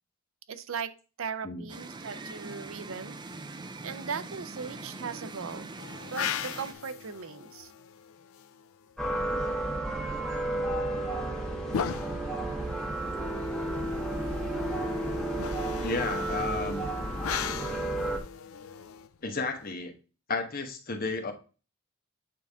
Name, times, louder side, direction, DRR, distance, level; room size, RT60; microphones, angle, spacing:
voice 1, 0.5-0.9 1.2-3.2 3.8-5.7 6.1-7.7, right 6 dB, 70° right, 11 dB, 0.6 m, -38 dB
sound 1, 1.7-6.7, right 3 dB, 20° right, 0.5 m, -42 dB
sound 2, 5.8-8.9 10.8-19.7, left 7 dB, 70° left, 0.4 m, -39 dB
sound 3, 9.0-18.2, right 1 dB, ahead, 1.3 m, -32 dB
voice 2, 15.8-16.9 19.2-19.9 20.3-21.3, left 3 dB, 45° left, 5 dB, 1.1 m, -32 dB
8.6 x 3.6 x 3.5 m, 0.34 s
head